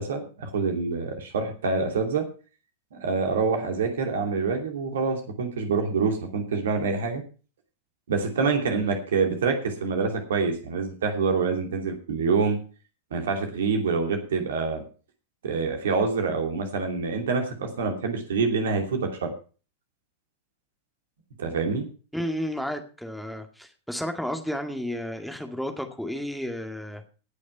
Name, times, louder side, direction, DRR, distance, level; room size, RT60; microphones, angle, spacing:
voice 1, 0.0-2.3 2.9-7.2 8.1-12.6 13.1-14.8 15.4-19.3 21.4-21.9, right 4 dB, 60° right, 4 dB, 2.8 m, -26 dB
voice 2, 22.1-27.1, equal, ahead, 5 dB, 2.0 m, -32 dB
18.0 x 6.3 x 5.6 m, 0.37 s
figure-of-eight pair, 90°, 0 cm